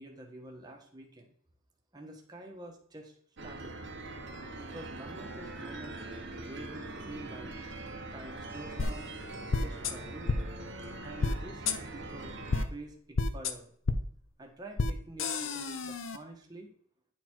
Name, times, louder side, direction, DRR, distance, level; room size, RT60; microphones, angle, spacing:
voice 1, 0.0-1.3 1.9-3.1 3.4-3.8 4.6-5.9 6.3-7.5 8.1-9.1 9.5-10.4 11.0-12.3 12.7-13.7 14.4-16.7, right 1 dB, 20° right, 1 dB, 1.4 m, -47 dB
sound 1, 3.4-12.7, right 2 dB, 60° right, 1.1 m, -42 dB
sound 2, 8.8-8.9 9.5-9.9 10.3-10.4 11.2-11.3 11.7-11.8 12.5-12.6 13.2-13.5 13.9-14.0 14.8-14.9 15.2-16.2, left 3 dB, 70° left, 0.7 m, -29 dB
9.9 x 4.2 x 4.5 m, 0.63 s
head